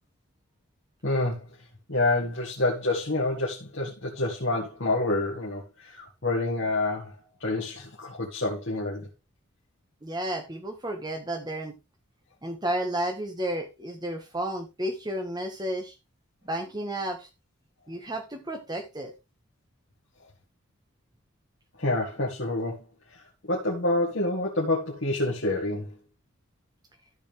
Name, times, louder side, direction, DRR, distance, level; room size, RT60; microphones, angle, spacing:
voice 1, 1.0-1.5 1.9-7.1 7.4-9.1 21.8-22.8 23.5-25.9, left 2 dB, 55° left, 1.9 m, -27 dB
voice 2, 10.0-11.8 12.4-15.9 16.4-17.3 17.9-19.1, right 1 dB, 20° right, 1.5 m, -32 dB
13.5 x 5.5 x 3.4 m
head